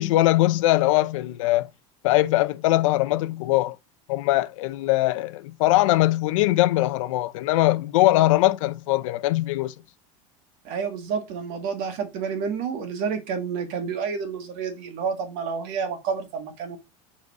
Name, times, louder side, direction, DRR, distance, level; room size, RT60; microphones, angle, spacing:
voice 1, 0.0-1.7 2.0-3.8 4.1-9.7, left 17 dB, 85° left, 0.6 m, -21 dB
voice 2, 10.7-16.8, right 6 dB, 60° right, 1.9 m, -29 dB
5.0 x 4.1 x 4.7 m
supercardioid pair, 130°, 16 cm